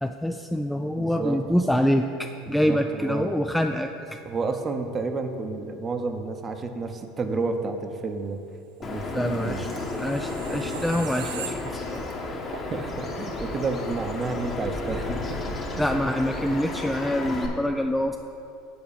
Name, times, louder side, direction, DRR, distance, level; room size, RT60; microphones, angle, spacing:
voice 1, 0.0-4.2 9.1-9.7 10.0-12.0 15.8-18.2, equal, 5° left, 5 dB, 0.3 m, -26 dB
voice 2, 1.0-1.4 2.5-3.3 4.3-8.4 8.8-9.7 12.7-15.4, right 4 dB, 30° right, 6 dB, 0.8 m, -30 dB
Bird vocalization bird call bird song, 8.8-17.5, left 2 dB, 35° left, 1.2 m, -32 dB
sound 1, 9.2-12.1 12.5-12.7, right 8 dB, 85° right, 0.4 m, -40 dB
7.0 x 4.6 x 6.9 m, 2.7 s
hypercardioid pair, 85°, 0 cm